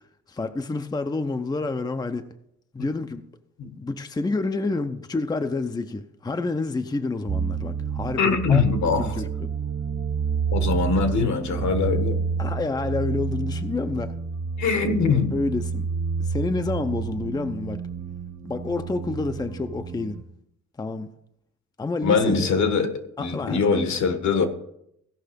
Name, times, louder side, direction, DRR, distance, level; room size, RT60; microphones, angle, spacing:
voice 1, 0.3-2.3 2.7-3.2 3.8-8.6 9.1-9.5 12.4-14.1 15.3-15.9 16.2-17.8 18.4-20.2 20.8-21.1 21.8-22.5 23.2-23.6, left 3 dB, 15° left, 0.6 m, -28 dB
sound 1, 7.3-20.2, right 6 dB, 70° right, 1.8 m, -29 dB
voice 2, 8.2-9.2 10.5-12.2 14.6-15.3 22.0-24.5, left 5 dB, 65° left, 1.5 m, -22 dB
16.0 x 5.5 x 5.2 m
cardioid pair, 90°, 30 cm